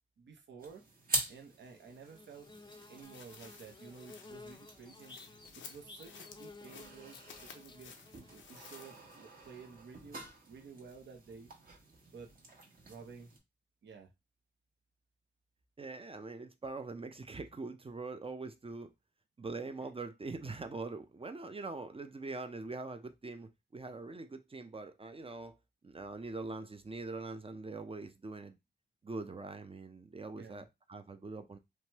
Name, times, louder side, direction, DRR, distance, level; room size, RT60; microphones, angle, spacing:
voice 1, 0.2-0.8 1.3-2.5 2.9-11.5 12.1-12.3 12.9-13.3 13.8-14.1 30.4-30.7, right 5 dB, 75° right, 0.7 m, -52 dB
sound 1, 0.6-13.4, right 1 dB, 50° right, 1.3 m, -45 dB
Bird / Buzz, 1.7-9.4, left 3 dB, 25° left, 0.5 m, -55 dB
sound 2, 3.0-9.4 9.7-9.8, left 6 dB, 90° left, 0.5 m, -55 dB
voice 2, 15.8-18.9 19.4-25.5 25.8-28.6 29.0-31.6, right 3 dB, 30° right, 0.5 m, -43 dB
3.0 x 2.2 x 2.9 m
cardioid pair, 55°, 19 cm